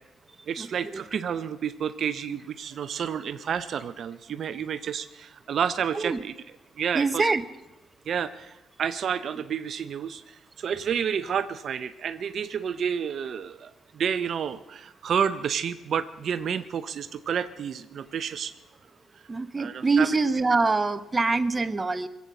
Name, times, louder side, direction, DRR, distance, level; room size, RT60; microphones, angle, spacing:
voice 1, 0.5-6.3 6.8-7.2 8.1-8.5 8.8-18.5 19.6-20.1, right 7 dB, 60° right, 12 dB, 0.6 m, -30 dB
voice 2, 6.9-7.4 19.3-22.1, right 3 dB, 25° right, 11 dB, 0.8 m, -24 dB
21.5 x 8.4 x 7.5 m, 0.95 s
cardioid pair, 90°, 0 cm